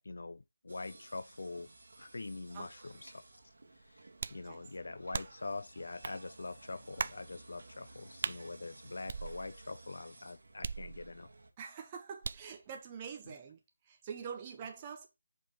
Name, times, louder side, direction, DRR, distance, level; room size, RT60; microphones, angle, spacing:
voice 1, 0.0-1.7 2.0-3.2 3.9-4.0 4.3-11.3, left 3 dB, 70° left, 0.3 m, -44 dB
sound 1, 0.7-11.5, right 2 dB, 75° right, 1.6 m, -56 dB
voice 2, 2.5-2.9 4.4-4.6 11.6-13.6 13.9-15.1, right 7 dB, 25° right, 0.9 m, -45 dB
sound 2, 4.2-4.5 5.1-5.5 6.0-6.2 7.0-7.3 8.2-8.4 9.1-9.7 10.6-11.3 12.2-12.6, right 5 dB, 45° right, 0.4 m, -39 dB
5.1 x 4.1 x 5.2 m
figure-of-eight pair, 165°, 0 cm